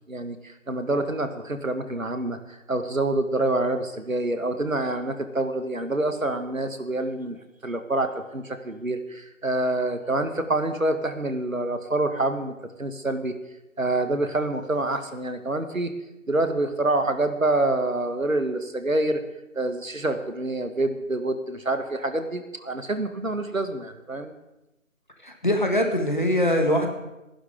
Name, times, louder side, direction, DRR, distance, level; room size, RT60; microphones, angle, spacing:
voice 1, 0.1-7.4 7.6-13.4 13.8-15.9 16.3-19.2 19.5-24.3, right 2 dB, 75° right, 7 dB, 1.9 m, -27 dB
voice 2, 25.2-26.9, equal, 35° left, 3 dB, 1.9 m, -22 dB
26.5 x 11.5 x 3.8 m, 0.96 s
figure-of-eight pair, 175°, 40 cm